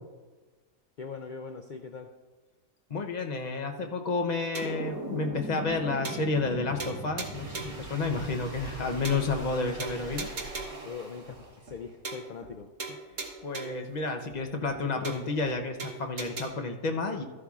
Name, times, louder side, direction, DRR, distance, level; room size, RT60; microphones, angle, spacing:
voice 1, 1.0-2.1 10.8-12.7, left 5 dB, 75° left, 5 dB, 0.4 m, -41 dB
voice 2, 2.9-10.3 13.4-17.2, left 3 dB, 40° left, 4 dB, 0.7 m, -31 dB
sound 1, 4.5-4.9 5.3-5.4 5.7-5.8 6.0-6.5 6.8-7.8 8.3-8.4 8.7-8.8 9.0-9.5 9.8-10.9 11.3-11.4 11.7-11.8 12.0-12.5 12.8-13.9 14.3-14.4 14.7-14.8 15.0-15.5 15.8-16.5, right 4 dB, 65° right, 1.6 m, -39 dB
sound 2, 4.6-10.7, right 1 dB, 20° right, 0.7 m, -40 dB
sound 3, 7.3-11.9, right 3 dB, 80° right, 3.3 m, -45 dB
14.0 x 11.0 x 2.4 m, 1.3 s
omnidirectional pair, 1.5 m